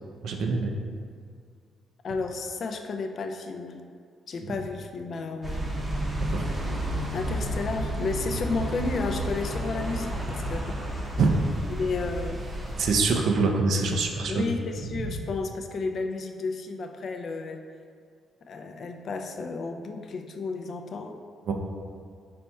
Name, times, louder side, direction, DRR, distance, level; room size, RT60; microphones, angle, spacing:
voice 1, 0.2-0.7 4.5-4.6 6.2-6.4 11.2-11.4 12.8-14.4 21.5-21.6, right 4 dB, 70° right, 2 dB, 0.4 m, -24 dB
voice 2, 2.0-3.8 4.3-5.7 7.1-11.1 11.7-12.4 14.3-17.6 18.5-21.2, left 4 dB, 55° left, 5 dB, 0.3 m, -32 dB
sound 1, 5.4-12.9, right 1 dB, 25° right, 0.7 m, -31 dB
4.2 x 4.1 x 2.2 m, 2.1 s
cardioid pair, 90°, 0 cm